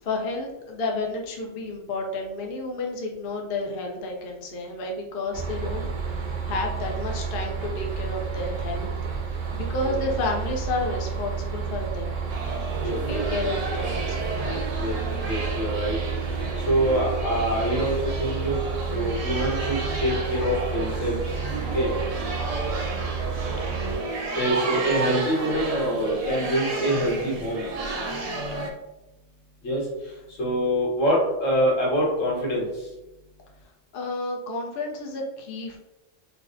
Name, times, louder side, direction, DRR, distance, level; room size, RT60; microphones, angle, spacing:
voice 1, 0.0-8.9 9.2-12.2 13.1-14.6 23.9-24.0 33.9-35.8, left 2 dB, 55° left, 0 dB, 0.7 m, -31 dB
sound 1, 5.3-24.0, right 5 dB, 80° right, 1.1 m, -30 dB
sound 2, 12.3-28.7, right 2 dB, 55° right, 0.4 m, -32 dB
voice 2, 12.8-13.5 14.8-15.0 15.2-16.0 16.3-18.6 18.9-21.4 21.7-21.9 24.1-27.6 29.6-29.9 30.3-32.9, equal, 85° left, -4 dB, 1.5 m, -25 dB
4.7 x 2.0 x 2.5 m, 0.98 s
omnidirectional pair, 1.3 m